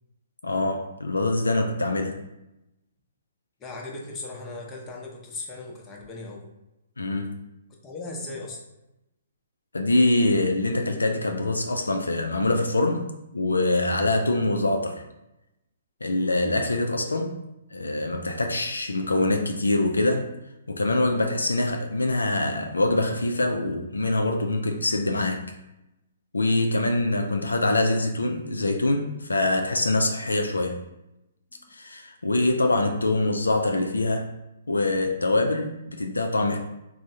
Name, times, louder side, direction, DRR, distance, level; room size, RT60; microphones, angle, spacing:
voice 1, 0.4-2.2 7.0-7.4 9.7-15.0 16.0-17.4 17.7-20.3 20.7-25.5 26.3-30.8 31.7-34.3 34.7-36.6, left 2 dB, 85° left, 4 dB, 0.3 m, -24 dB
voice 2, 3.6-6.4 7.8-8.6, left 2 dB, 20° left, -1 dB, 0.6 m, -37 dB
3.4 x 2.0 x 2.6 m, 0.92 s
figure-of-eight pair, 130°, 0 cm